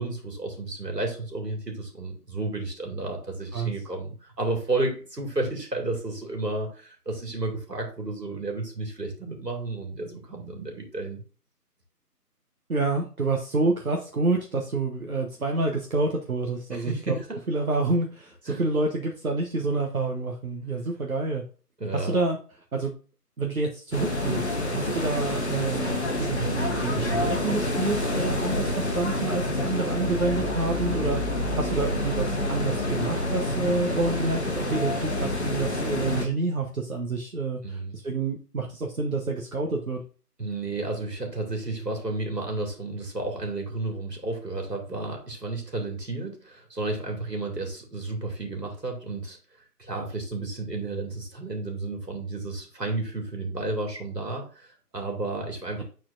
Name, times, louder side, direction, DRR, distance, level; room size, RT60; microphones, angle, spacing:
voice 1, 0.0-11.2 16.7-17.4 18.5-18.6 21.8-22.2 37.6-38.0 40.4-55.8, right 2 dB, 85° right, 2 dB, 2.4 m, -32 dB
voice 2, 12.7-17.1 17.5-21.4 21.9-22.4 22.7-22.9 23.4-40.0, right 3 dB, 60° right, 1 dB, 1.1 m, -28 dB
sound 1, 23.9-36.3, left 1 dB, 45° left, 1.2 m, -28 dB
8.6 x 4.3 x 2.6 m, 0.37 s
figure-of-eight pair, 165°, 48 cm